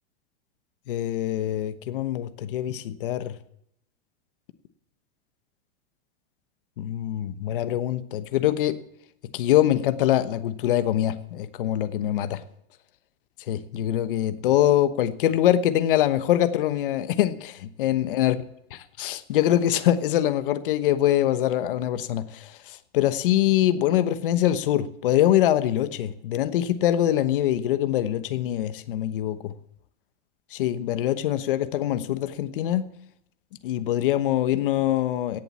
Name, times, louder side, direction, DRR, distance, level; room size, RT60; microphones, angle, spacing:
voice 1, 0.9-3.4 6.8-8.8 9.3-12.4 13.5-18.4 19.0-29.5 30.5-32.9 33.6-35.4, left 12 dB, 50° left, 1.1 m, -24 dB
17.0 x 7.4 x 8.4 m
supercardioid pair, 175°, 35 cm